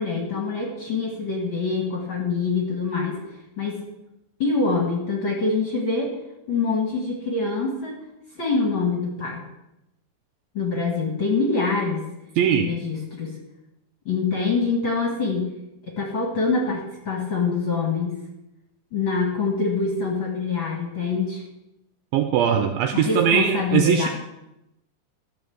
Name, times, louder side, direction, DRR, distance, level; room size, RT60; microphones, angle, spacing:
voice 1, 0.0-3.8 4.4-6.1 6.5-8.0 8.4-9.4 10.5-12.1 12.5-13.3 14.1-15.5 15.9-18.2 18.9-21.4 22.9-24.1, left 4 dB, 40° left, 0 dB, 1.9 m, -25 dB
voice 2, 12.4-12.7 22.1-24.1, right 9 dB, 85° right, 6 dB, 2.1 m, -20 dB
13.5 x 5.3 x 7.8 m, 0.89 s
omnidirectional pair, 4.8 m